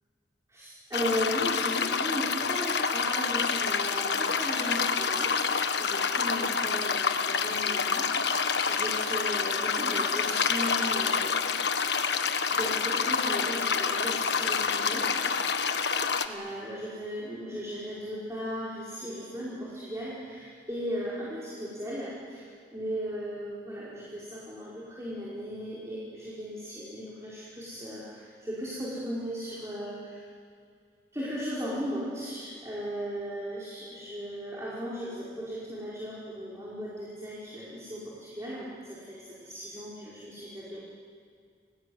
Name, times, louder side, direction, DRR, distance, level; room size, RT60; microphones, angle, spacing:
voice 1, 0.5-8.4 8.7-11.3 12.5-15.5 16.2-30.2 31.1-40.8, equal, 15° right, -7 dB, 5.0 m, -37 dB
sound 1, 0.9-16.3, left 5 dB, 70° left, 1.4 m, -28 dB
29.5 x 19.5 x 9.6 m, 2.2 s
head